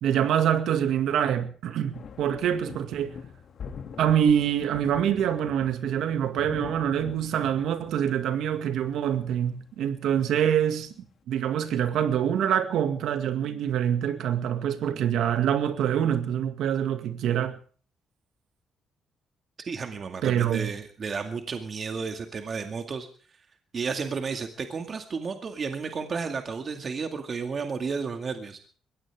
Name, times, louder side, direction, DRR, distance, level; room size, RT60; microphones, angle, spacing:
voice 1, 0.0-3.1 4.0-10.9 11.3-17.6 20.2-20.7, right 9 dB, 80° right, 2.1 m, -25 dB
sound 1, 1.9-11.1, left 6 dB, 60° left, 2.5 m, -44 dB
voice 2, 19.7-23.1 23.7-28.7, right 5 dB, 45° right, 2.1 m, -32 dB
22.0 x 17.0 x 3.6 m
cardioid pair, 90°, 0 cm